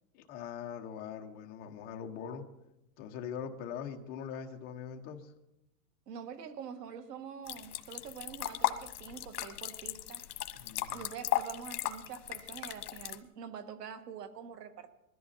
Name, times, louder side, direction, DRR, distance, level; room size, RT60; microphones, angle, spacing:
voice 1, 0.1-2.4 3.0-5.3 10.5-11.0, left 7 dB, 20° left, 2 dB, 0.9 m, -42 dB
voice 2, 6.1-10.2 10.9-14.9, right 7 dB, 80° right, 8 dB, 1.9 m, -45 dB
sound 1, 7.5-13.2, left 13 dB, 75° left, 1.3 m, -36 dB
21.0 x 13.5 x 4.2 m, 0.89 s
supercardioid pair, 180°, 47 cm